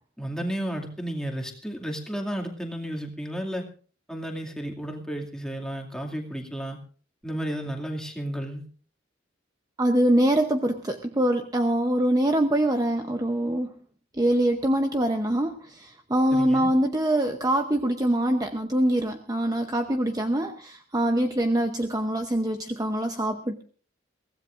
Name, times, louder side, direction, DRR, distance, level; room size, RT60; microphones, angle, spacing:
voice 1, 0.2-3.6 4.1-6.8 7.2-8.7 16.3-16.7, right 1 dB, 5° left, 0 dB, 2.4 m, -32 dB
voice 2, 9.8-13.7 14.1-23.6, right 1 dB, 20° right, 5 dB, 0.8 m, -24 dB
23.0 x 16.5 x 2.6 m, 0.42 s
head